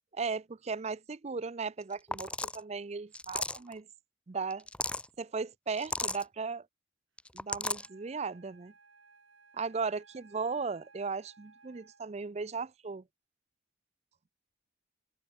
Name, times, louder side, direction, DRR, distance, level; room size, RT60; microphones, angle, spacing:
voice 1, 0.1-3.9 4.3-4.6 5.2-6.7 7.3-8.7 9.5-13.0, right 4 dB, 35° right, 0.5 m, -36 dB
sound 1, 1.8-1.9 2.1-2.6 3.1-3.7 4.5-5.1 5.8-6.2 7.2-7.9, left 2 dB, 5° left, 1.1 m, -35 dB
Wind instrument woodwind instrument, 7.7-12.3, right 4 dB, 75° right, 7.0 m, -61 dB
open air
head